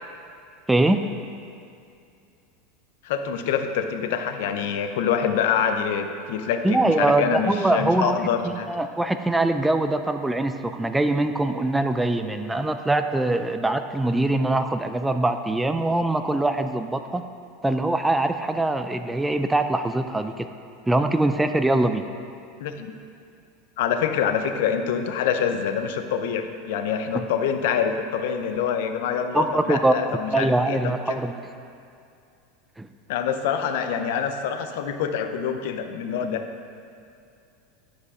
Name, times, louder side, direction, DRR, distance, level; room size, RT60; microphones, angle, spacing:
voice 1, 0.7-1.1 6.6-8.2 8.7-17.2 17.6-20.5 20.9-22.0 27.1-27.2 29.3-29.9 30.3-31.3 32.8-32.9, right 2 dB, 5° right, 8 dB, 0.3 m, -23 dB
voice 2, 3.0-8.7 22.6-22.9 23.8-30.8 31.1-31.2 33.1-36.5, left 7 dB, 70° left, 7 dB, 0.7 m, -26 dB
10.5 x 5.1 x 4.9 m, 2.5 s
supercardioid pair, 135°, 0 cm